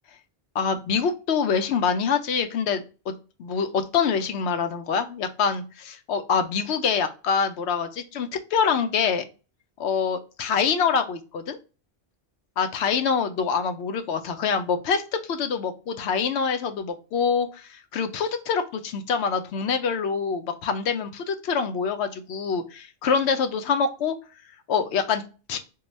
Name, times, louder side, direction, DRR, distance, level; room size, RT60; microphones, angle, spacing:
voice 1, 0.5-3.1 3.4-9.3 9.8-11.6 12.6-15.0 15.3-24.1 24.7-25.2 25.5-25.6, left 6 dB, 75° left, 8 dB, 0.9 m, -25 dB
3.8 x 2.2 x 3.0 m, 0.33 s
omnidirectional pair, 1.1 m